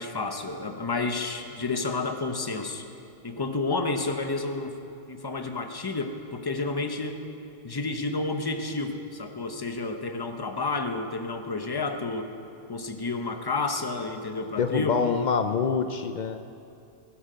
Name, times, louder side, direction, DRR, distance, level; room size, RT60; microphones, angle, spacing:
voice 1, 0.0-2.8 3.2-4.8 5.1-7.2 7.6-12.3 12.7-15.2, left 3 dB, 25° left, 6 dB, 0.6 m, -30 dB
voice 2, 14.6-16.4, left 6 dB, 85° left, 8 dB, 0.4 m, -26 dB
19.0 x 12.0 x 5.0 m, 2.6 s
omnidirectional pair, 1.5 m